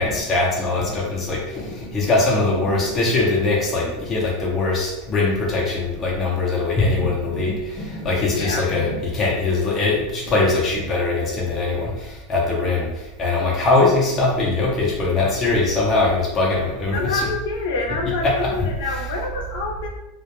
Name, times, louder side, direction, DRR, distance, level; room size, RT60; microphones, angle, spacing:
voice 1, 0.0-17.3 18.0-19.0, left 3 dB, 20° left, -4 dB, 0.6 m, -21 dB
voice 2, 16.9-19.9, left 3 dB, 80° left, -1 dB, 0.6 m, -26 dB
2.1 x 2.1 x 2.9 m, 0.97 s
supercardioid pair, 165°, 0 cm